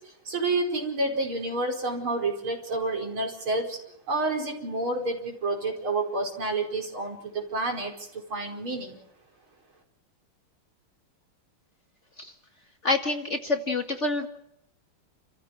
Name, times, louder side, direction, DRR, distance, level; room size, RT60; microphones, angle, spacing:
voice 1, 0.3-3.8 4.1-9.0, right 2 dB, 70° right, 2 dB, 5.7 m, -29 dB
voice 2, 12.8-14.3, left 3 dB, 35° left, 5 dB, 2.2 m, -27 dB
29.5 x 15.0 x 7.9 m, 0.75 s
omnidirectional pair, 2.4 m